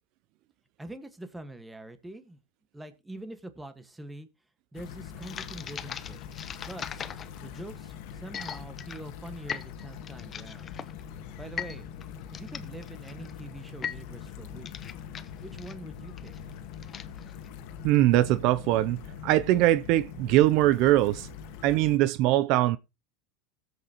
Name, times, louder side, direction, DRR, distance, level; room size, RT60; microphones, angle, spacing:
voice 1, 0.8-2.4 2.7-4.3 4.7-6.2 6.6-7.0 7.4-10.7 11.4-11.9 12.3-14.9 15.4-16.3, right 1 dB, 10° right, 1.4 m, -44 dB
sound 1, 4.7-22.0, left 8 dB, 60° left, 1.5 m, -43 dB
sound 2, 5.2-17.5, left 8 dB, 25° left, 0.8 m, -41 dB
voice 2, 17.8-21.3 21.6-22.8, right 15 dB, 55° right, 0.5 m, -22 dB
17.0 x 7.9 x 2.9 m
supercardioid pair, 130°, 0 cm